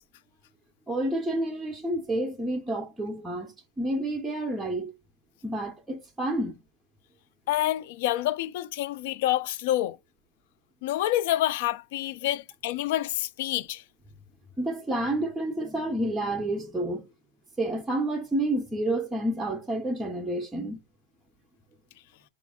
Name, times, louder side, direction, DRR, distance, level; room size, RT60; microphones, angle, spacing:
voice 1, 0.9-4.9 5.4-6.6 12.2-12.4 14.6-17.1 17.6-20.8, right 1 dB, 5° right, 0.5 m, -29 dB
voice 2, 7.5-10.0 10.8-13.8, left 14 dB, 55° left, 0.4 m, -27 dB
5.1 x 2.4 x 3.5 m
supercardioid pair, 170°, 0 cm